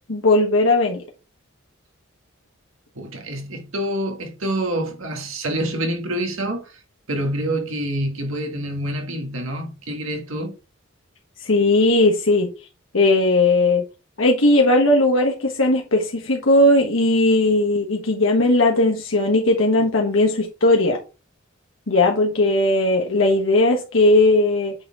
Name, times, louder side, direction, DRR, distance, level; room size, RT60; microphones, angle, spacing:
voice 1, 0.1-1.0 11.4-12.5 12.9-13.8 14.2-21.0 21.9-24.7, left 2 dB, 70° left, 1.2 m, -17 dB
voice 2, 3.0-6.8 7.1-10.5, right 1 dB, 80° right, 1.8 m, -27 dB
8.6 x 4.3 x 3.6 m
head